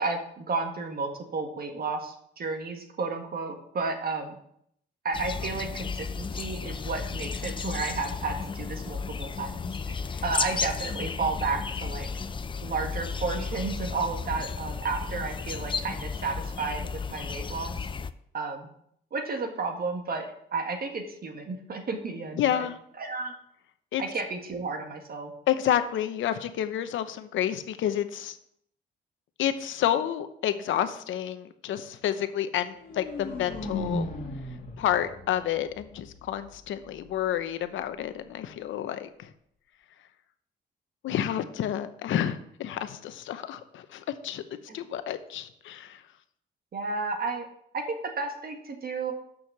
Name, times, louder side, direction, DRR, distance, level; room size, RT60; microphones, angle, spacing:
voice 1, 0.0-4.3 5.0-12.1 12.6-17.8 18.3-18.7 19.1-20.2 20.5-22.7 23.0-23.3 24.0-25.3 44.7-44.8 46.7-47.5 47.7-49.1, right 4 dB, 50° right, 3 dB, 1.8 m, -32 dB
sound 1, 5.1-18.1, left 5 dB, 25° left, 0.5 m, -33 dB
voice 2, 22.4-22.8 23.9-24.0 25.5-28.4 29.4-34.1 34.8-39.3 41.0-44.4 44.7-46.0, left 10 dB, 75° left, 11 dB, 0.8 m, -29 dB
sound 2, 32.6-36.6, left 2 dB, 45° left, 2.4 m, -36 dB
6.4 x 6.1 x 7.2 m, 0.71 s
cardioid pair, 90°, 20 cm